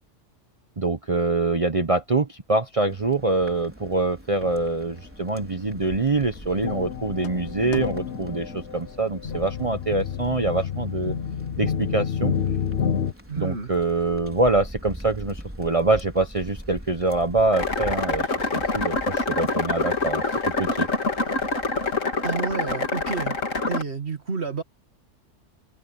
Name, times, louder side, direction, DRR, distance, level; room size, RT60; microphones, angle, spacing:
voice 1, 0.8-11.2 11.6-12.3 13.4-18.2 18.5-20.2 20.6-20.9, right 3 dB, 30° right, 1.0 m, -24 dB
sound 1, 2.9-22.0, equal, 10° right, 4.2 m, -43 dB
sound 2, 4.4-4.7 5.4-5.5 5.8-13.1, left 7 dB, 60° left, 1.1 m, -29 dB
voice 2, 13.3-13.7 22.2-23.4 23.7-24.6, right 5 dB, 55° right, 2.4 m, -29 dB
sound 3, 17.5-23.8, left 3 dB, 90° left, 3.3 m, -26 dB
omnidirectional pair, 1.3 m